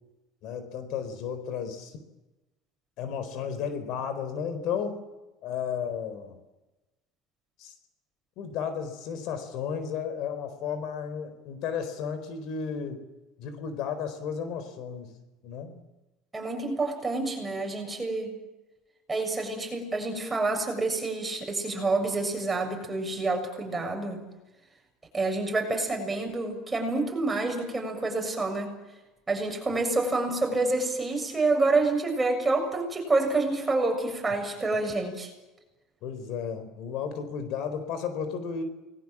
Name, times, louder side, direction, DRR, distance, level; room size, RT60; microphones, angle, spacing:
voice 1, 0.4-1.9 3.0-5.0 5.4-6.4 7.6-7.7 8.4-13.0 13.4-15.1 15.4-15.8 29.7-29.8 36.0-38.6, left 7 dB, 60° left, 10 dB, 4.2 m, -33 dB
voice 2, 16.3-18.3 19.1-24.2 25.1-28.7 29.3-35.3, right 3 dB, 15° right, 3 dB, 6.9 m, -28 dB
29.0 x 21.0 x 7.4 m, 1.0 s
cardioid pair, 130°, 0 cm